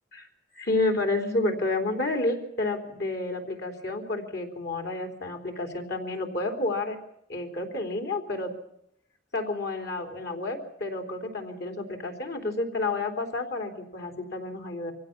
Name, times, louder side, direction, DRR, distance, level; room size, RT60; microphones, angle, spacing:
voice 1, 0.6-7.0 7.3-8.5 9.3-14.9, left 2 dB, 60° left, 5 dB, 3.6 m, -30 dB
24.0 x 16.0 x 7.3 m, 0.74 s
head